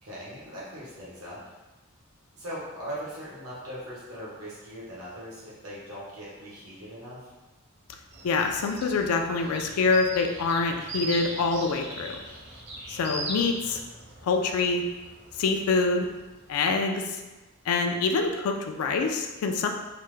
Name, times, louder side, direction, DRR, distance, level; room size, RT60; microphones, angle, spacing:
voice 1, 0.0-1.4 2.3-7.3, equal, 90° right, -8 dB, 0.9 m, -40 dB
sound 1, 8.1-16.5, right 1 dB, 55° right, 0.7 m, -40 dB
voice 2, 8.2-12.2 12.9-13.8 14.2-14.8 15.4-16.1 16.5-17.2 17.7-19.7, left 4 dB, 85° left, 4 dB, 0.4 m, -25 dB
3.3 x 2.0 x 3.1 m, 1.1 s
head